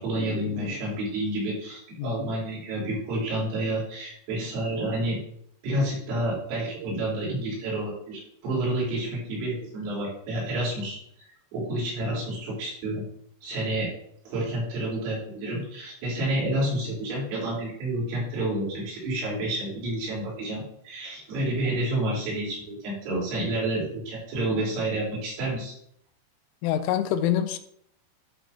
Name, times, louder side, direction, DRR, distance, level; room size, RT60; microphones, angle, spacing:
voice 1, 0.0-5.2 5.6-11.0 11.5-13.0 13.4-13.9 14.3-25.8, right 1 dB, 85° right, -7 dB, 6.8 m, -29 dB
voice 2, 2.0-2.3 26.6-27.6, left 11 dB, 85° left, 9 dB, 3.1 m, -26 dB
14.5 x 5.5 x 2.9 m, 0.70 s
omnidirectional pair, 5.7 m